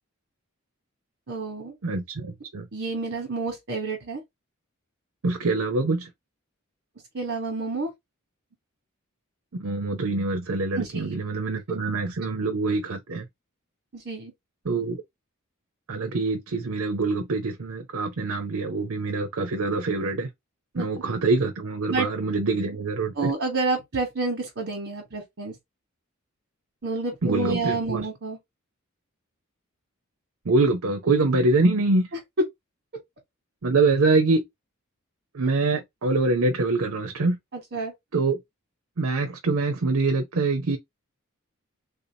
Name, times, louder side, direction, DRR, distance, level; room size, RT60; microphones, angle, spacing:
voice 1, 1.3-1.7 2.7-4.2 7.1-7.9 10.7-11.1 13.9-14.3 20.7-20.9 21.9-22.1 23.1-25.5 26.8-28.4 37.5-37.9, right 3 dB, 55° right, 1.2 m, -29 dB
voice 2, 1.8-2.7 5.2-6.1 9.5-13.2 14.7-15.0 15.9-20.3 20.8-23.3 27.2-28.1 30.5-32.1 33.6-34.4 35.3-37.4 38.1-38.4 39.0-40.8, right 3 dB, 70° right, 0.7 m, -24 dB
3.5 x 2.8 x 2.7 m
head